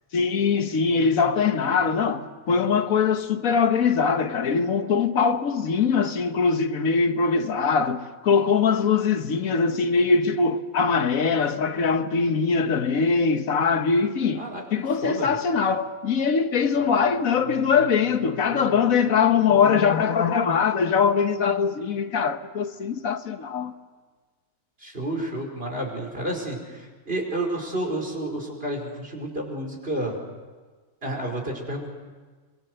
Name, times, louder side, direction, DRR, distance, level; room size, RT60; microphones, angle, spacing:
voice 1, 0.1-14.4 14.7-23.7, left 5 dB, 85° left, 1.6 m, -22 dB
voice 2, 15.0-15.4 24.8-30.2 31.0-31.9, right 1 dB, 45° right, 5.2 m, -30 dB
24.5 x 24.5 x 7.9 m
omnidirectional pair, 1.4 m